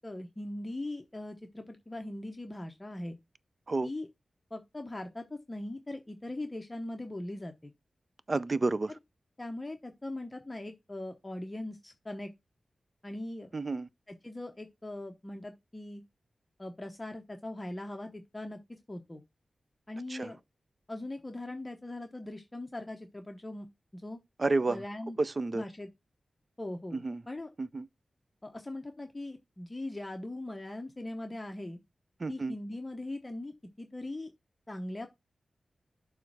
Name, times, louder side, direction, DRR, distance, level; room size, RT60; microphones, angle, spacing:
voice 1, 0.0-3.2 3.8-4.1 4.5-7.7 9.4-12.3 13.0-13.5 14.1-16.0 16.6-19.2 19.9-20.4 20.9-23.7 23.9-24.2 24.7-25.2 25.5-25.9 26.6-27.0 27.3-27.5 28.4-31.8 32.3-34.3 34.7-35.1, left 1 dB, 20° left, 0.9 m, -40 dB
voice 2, 8.3-8.9 13.5-13.9 20.1-20.3 24.4-24.8 25.2-25.6 26.9-27.2 27.6-27.9 32.2-32.6, right 3 dB, 40° right, 0.5 m, -30 dB
6.9 x 3.2 x 6.0 m
wide cardioid pair, 85°, 0 cm